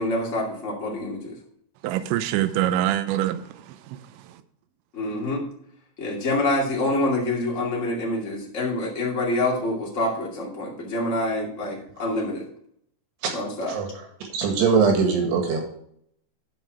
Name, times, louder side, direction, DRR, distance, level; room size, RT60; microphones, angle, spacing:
voice 1, 0.0-1.3 4.9-5.4 6.0-12.4 13.3-13.7, left 1 dB, 60° left, -3 dB, 0.7 m, -26 dB
voice 2, 1.8-4.4, right 12 dB, 85° right, 11 dB, 2.6 m, -26 dB
voice 3, 14.3-15.6, right 5 dB, 65° right, 3 dB, 3.6 m, -21 dB
11.5 x 5.8 x 4.8 m, 0.68 s
omnidirectional pair, 5.9 m